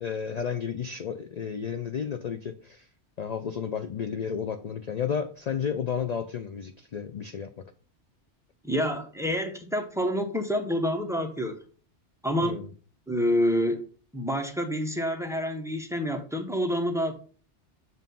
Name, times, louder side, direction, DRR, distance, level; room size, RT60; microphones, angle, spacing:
voice 1, 0.0-2.9 3.2-7.6 12.4-12.7, left 7 dB, 70° left, 9 dB, 0.4 m, -32 dB
voice 2, 8.6-11.6 12.2-12.7 13.1-13.9 14.1-17.1, equal, 5° right, 5 dB, 0.5 m, -28 dB
7.4 x 2.6 x 5.3 m, 0.40 s
omnidirectional pair, 1.2 m